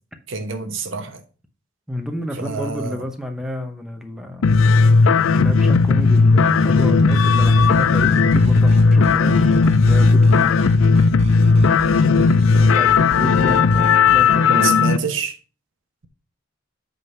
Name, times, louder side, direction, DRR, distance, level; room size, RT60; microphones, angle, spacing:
voice 1, 0.3-1.2 2.4-3.0 12.1-12.5 14.5-15.4, right 4 dB, 75° right, 1.0 m, -27 dB
voice 2, 1.9-4.6 5.0-10.6 12.3-14.8, left 1 dB, 5° right, 0.8 m, -30 dB
sound 1, 4.4-15.0, left 4 dB, 90° left, 0.4 m, -15 dB
Bowed string instrument, 5.0-10.2, equal, 45° left, 1.0 m, -35 dB
sound 2, 6.7-14.4, right 2 dB, 35° right, 0.4 m, -32 dB
8.0 x 3.9 x 5.5 m
head